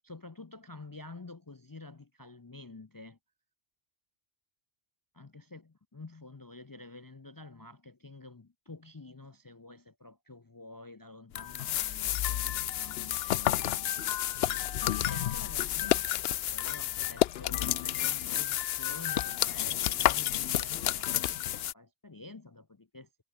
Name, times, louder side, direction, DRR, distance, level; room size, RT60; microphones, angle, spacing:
voice 1, 0.0-3.2 5.1-14.4 14.8-23.1, left 2 dB, 25° left, 0.5 m, -49 dB
sound 1, 11.4-21.7, left 12 dB, 70° left, 0.8 m, -30 dB
omnidirectional pair, 1.1 m